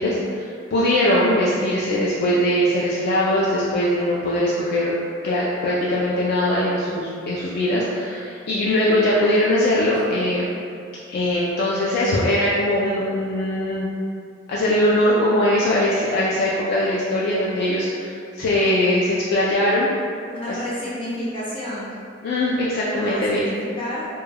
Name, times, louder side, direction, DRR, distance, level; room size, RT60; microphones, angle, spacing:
voice 1, 0.0-4.9 5.2-10.5 11.1-13.9 14.5-19.9 20.5-20.6 22.2-23.5, left 1 dB, 55° left, -6 dB, 0.3 m, -21 dB
voice 2, 20.2-21.9 22.9-24.1, left 1 dB, 30° left, -9 dB, 0.7 m, -31 dB
2.2 x 2.1 x 3.2 m, 2.3 s
head